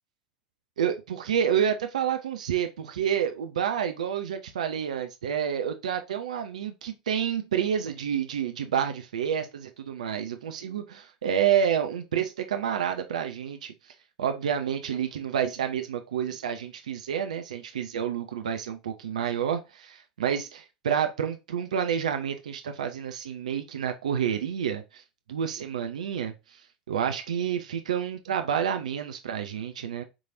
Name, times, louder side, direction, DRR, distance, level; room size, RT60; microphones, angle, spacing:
voice 1, 0.8-13.7 14.2-25.0 25.3-26.3 26.9-30.0, right 8 dB, 70° right, 0.6 m, -29 dB
6.1 x 3.2 x 2.6 m
figure-of-eight pair, 80°, 4 cm